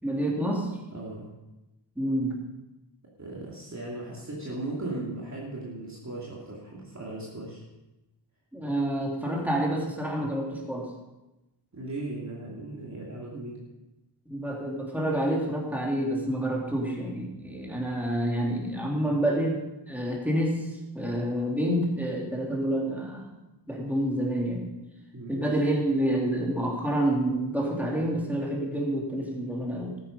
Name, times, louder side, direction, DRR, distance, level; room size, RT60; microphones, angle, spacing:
voice 1, 0.0-0.7 2.0-2.4 8.5-10.9 13.3-13.4 14.3-23.3 23.7-24.7 25.3-30.0, right 1 dB, 5° right, -2 dB, 3.2 m, -28 dB
voice 2, 0.9-1.3 3.2-7.6 11.7-13.6 25.1-25.8, right 2 dB, 40° right, -5 dB, 2.8 m, -37 dB
13.5 x 9.8 x 5.3 m, 1.0 s
wide cardioid pair, 85°, 43 cm